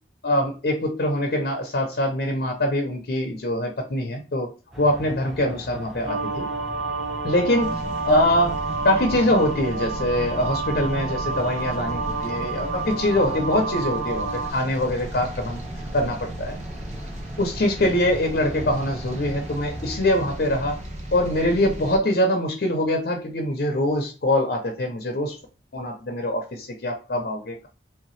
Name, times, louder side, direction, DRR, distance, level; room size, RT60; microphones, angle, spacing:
voice 1, 0.2-4.5 4.8-6.5 7.2-7.7 8.1-8.6 8.8-15.6 15.9-16.6 17.4-20.8 21.1-25.3 25.7-27.7, left 1 dB, 60° left, 3 dB, 0.6 m, -23 dB
sound 1, 4.7-20.0, equal, ahead, 0.6 m, -40 dB
sound 2, 6.1-14.5, right 3 dB, 80° right, 1.8 m, -30 dB
sound 3, 7.6-22.0, right 1 dB, 40° right, 0.7 m, -36 dB
3.2 x 2.8 x 3.1 m, 0.35 s
head